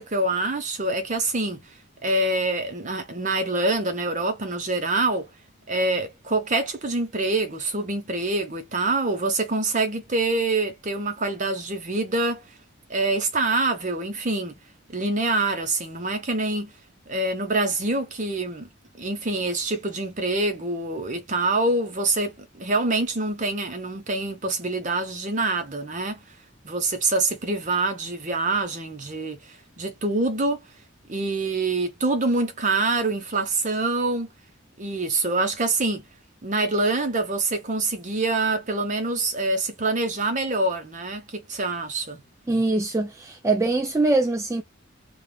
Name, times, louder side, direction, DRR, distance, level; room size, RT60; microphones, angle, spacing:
voice 1, 0.0-1.6 2.0-5.3 5.7-12.4 12.9-14.5 14.9-16.7 17.1-18.7 19.0-26.2 26.6-30.6 31.1-34.3 34.8-36.0 36.4-42.2, right 2 dB, 35° right, 0.8 m, -25 dB
voice 2, 42.5-44.6, right 2 dB, 15° right, 0.3 m, -23 dB
3.4 x 2.4 x 2.3 m
head